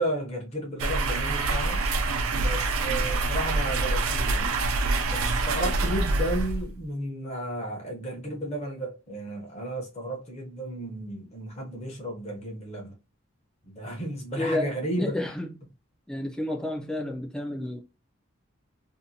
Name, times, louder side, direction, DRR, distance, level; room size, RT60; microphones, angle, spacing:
voice 1, 0.0-1.8 2.4-4.6 5.1-12.9 13.7-15.1, right 1 dB, 30° left, 0.8 m, -33 dB
sound 1, 0.8-6.8, right 3 dB, 90° right, 0.4 m, -26 dB
voice 2, 14.4-14.7 15.0-15.6 16.1-17.8, left 1 dB, 5° left, 0.3 m, -30 dB
2.7 x 2.1 x 2.7 m
head